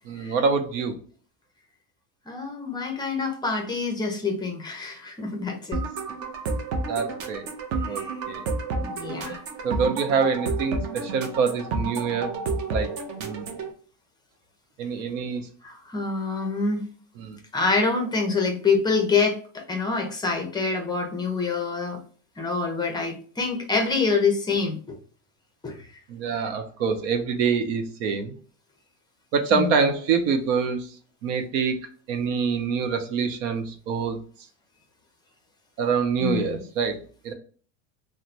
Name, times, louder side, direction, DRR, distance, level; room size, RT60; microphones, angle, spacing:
voice 1, 0.1-1.0 6.9-7.5 7.9-8.4 8.7-8.8 9.6-12.3 12.7-13.5 14.8-15.5 17.2-17.4 26.1-28.3 29.3-31.0 31.2-31.8 32.1-34.2 35.8-37.3, right 5 dB, 85° right, 6 dB, 0.8 m, -26 dB
voice 2, 2.3-5.8 7.9-8.1 8.8-9.4 15.6-16.9 17.5-22.0 22.4-24.8 25.6-25.8 29.5-29.7 36.2-36.6, left 4 dB, 10° left, 3 dB, 0.5 m, -26 dB
sound 1, 5.7-13.7, right 3 dB, 40° right, 0.6 m, -30 dB
3.0 x 2.1 x 2.5 m, 0.43 s
supercardioid pair, 140°, 37 cm